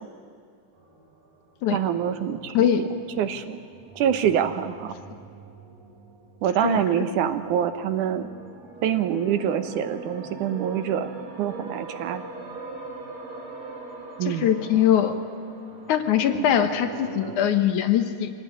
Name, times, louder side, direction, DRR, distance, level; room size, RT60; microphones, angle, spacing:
sound 1, 0.7-17.3, right 3 dB, 55° right, 4.4 m, -42 dB
voice 1, 1.7-2.9 3.2-3.6 4.0-4.9 6.4-8.3 8.8-11.1 11.4-12.2 14.2-14.5, right 9 dB, 75° right, 10 dB, 2.5 m, -25 dB
voice 2, 14.2-15.2 15.9-18.3, left 9 dB, 75° left, 8 dB, 2.6 m, -22 dB
25.0 x 18.5 x 9.8 m, 2.3 s
omnidirectional pair, 3.7 m